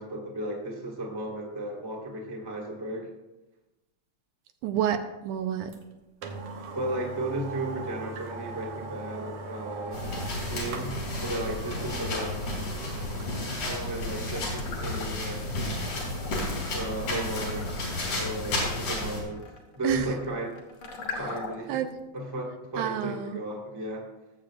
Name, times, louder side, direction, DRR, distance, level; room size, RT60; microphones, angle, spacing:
voice 1, 0.0-3.1 6.7-10.0 10.4-10.9 11.2-12.4 13.5-15.4 16.7-17.7 18.1-19.4 19.7-20.6 21.2-21.8 22.1-24.1, right 1 dB, 10° right, -1 dB, 1.2 m, -34 dB
voice 2, 4.6-5.7 19.8-20.1 21.1-21.2 21.7-21.9 22.8-23.4, right 9 dB, 85° right, 7 dB, 2.3 m, -29 dB
sound 1, 5.7-5.8 6.2-13.5 13.9-14.0, right 3 dB, 70° right, 2.1 m, -40 dB
sound 2, 9.9-19.2, left 1 dB, 70° left, 4.7 m, -32 dB
sound 3, 14.3-15.4 15.8-21.8, left 4 dB, 50° left, 1.9 m, -41 dB
18.5 x 7.6 x 2.5 m, 1.0 s
omnidirectional pair, 3.5 m